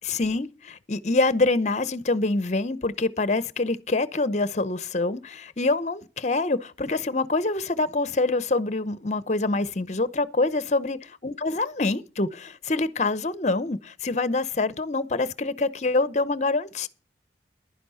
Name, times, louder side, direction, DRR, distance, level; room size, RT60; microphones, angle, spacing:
voice 1, 0.1-16.9, left 3 dB, 40° left, 0.7 m, -25 dB
11.0 x 10.5 x 5.6 m
head